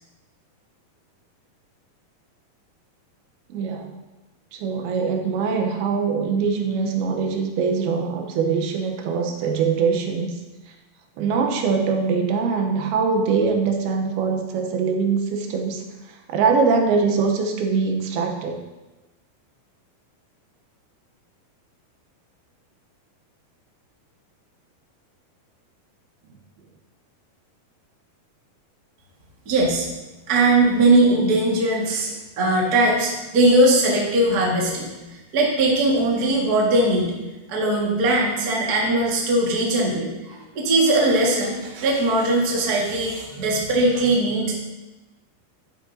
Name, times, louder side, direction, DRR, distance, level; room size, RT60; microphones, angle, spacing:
voice 1, 3.5-3.9 4.5-10.4 11.2-15.8 16.3-18.6, right 5 dB, 85° right, 3 dB, 2.8 m, -22 dB
voice 2, 29.4-29.9 30.3-34.9 35.3-37.1 37.5-44.5, right 2 dB, 40° right, -3 dB, 1.5 m, -20 dB
11.5 x 10.5 x 2.7 m, 1.1 s
omnidirectional pair, 4.4 m